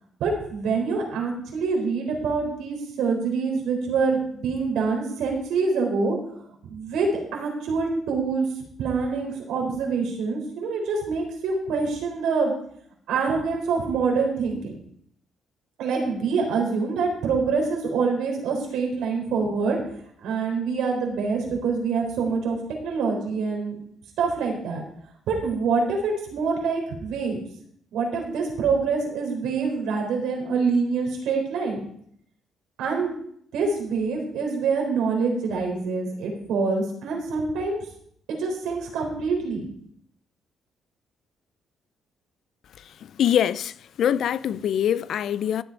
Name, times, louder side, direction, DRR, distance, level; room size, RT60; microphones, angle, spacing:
voice 1, 0.2-6.2 6.6-8.5 8.8-12.5 13.1-14.8 15.8-19.8 20.2-22.6 22.8-23.8 24.2-24.8 25.3-27.4 27.9-31.8 32.8-33.1 33.5-37.8 38.3-39.7, right 4 dB, 85° right, 3.8 m, -25 dB
voice 2, 43.2-45.6, left 9 dB, 70° left, 0.5 m, -23 dB
14.0 x 8.1 x 4.6 m
cardioid pair, 90°, 0 cm